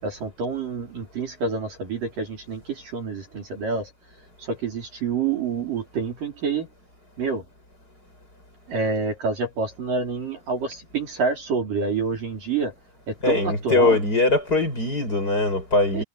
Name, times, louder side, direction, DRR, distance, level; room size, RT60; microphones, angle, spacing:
voice 1, 0.0-3.9 4.4-6.7 7.2-7.4 8.7-12.7 13.1-14.0 15.9-16.0, right 4 dB, 50° right, 5.9 m, -27 dB
voice 2, 13.2-16.0, left 2 dB, 20° left, 7.7 m, -21 dB
omnidirectional pair, 5.0 m